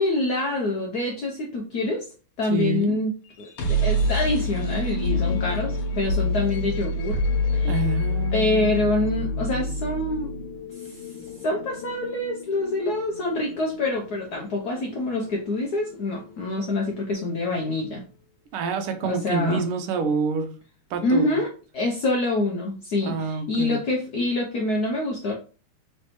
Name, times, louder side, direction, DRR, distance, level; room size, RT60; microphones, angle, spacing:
voice 1, 0.0-2.1 2.4-3.1 3.4-7.2 7.5-7.8 8.3-10.3 10.8-11.1 11.4-18.0 19.0-19.7 21.0-25.3, left 2 dB, 70° left, 1 dB, 0.9 m, -26 dB
voice 2, 2.5-3.0 7.6-8.7 18.5-20.5 20.9-21.4 23.0-23.8, right 4 dB, 80° right, 7 dB, 1.6 m, -27 dB
sound 1, 3.3-17.1, left 1 dB, 85° left, 1.8 m, -28 dB
3.9 x 3.2 x 3.0 m, 0.35 s
omnidirectional pair, 2.4 m